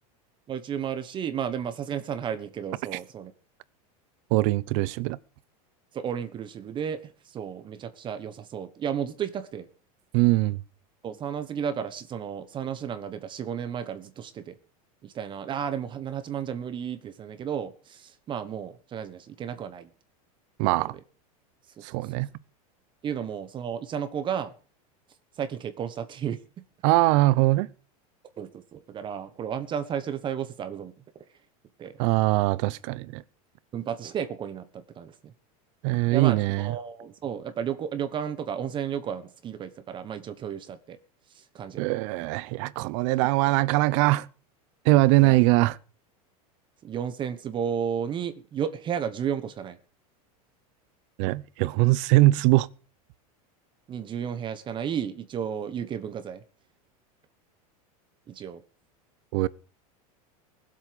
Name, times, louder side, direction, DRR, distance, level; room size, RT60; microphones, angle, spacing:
voice 1, 0.5-3.3 5.9-9.7 11.0-14.6 15.0-19.9 20.8-20.9 21.8-22.1 23.0-24.5 25.4-26.4 28.4-31.2 31.8-31.9 33.7-35.3 36.1-41.0 41.3-41.9 45.2-45.4 46.8-49.8 53.9-56.4 58.3-58.6, right 8 dB, 25° right, 1.2 m, -33 dB
voice 2, 4.3-5.2 10.1-10.6 20.6-20.9 21.8-22.3 26.8-27.7 32.0-33.2 35.8-36.7 41.8-44.3 44.8-45.8 51.2-52.7 59.3-59.5, right 19 dB, 55° right, 0.9 m, -22 dB
20.0 x 7.9 x 6.8 m
supercardioid pair, 150°, 19 cm